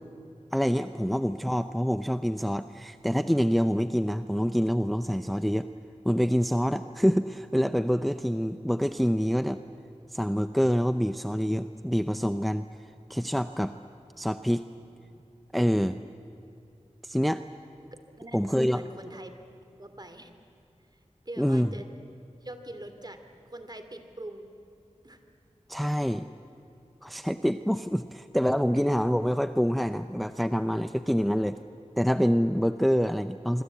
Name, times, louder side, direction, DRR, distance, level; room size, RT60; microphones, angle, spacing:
voice 1, 0.5-5.7 6.0-9.6 10.1-12.7 13.1-13.8 14.2-14.6 15.5-16.0 17.0-17.4 18.3-18.8 21.4-21.7 25.7-26.3 27.0-31.6 32.0-33.6, equal, ahead, 10 dB, 0.6 m, -26 dB
voice 2, 18.2-19.3 19.8-20.3 21.3-21.9 22.4-23.2 23.5-24.5 25.0-25.2 28.8-28.9, right 1 dB, 35° right, 8 dB, 2.6 m, -43 dB
26.0 x 24.5 x 8.3 m, 2.8 s
wide cardioid pair, 60°, 12 cm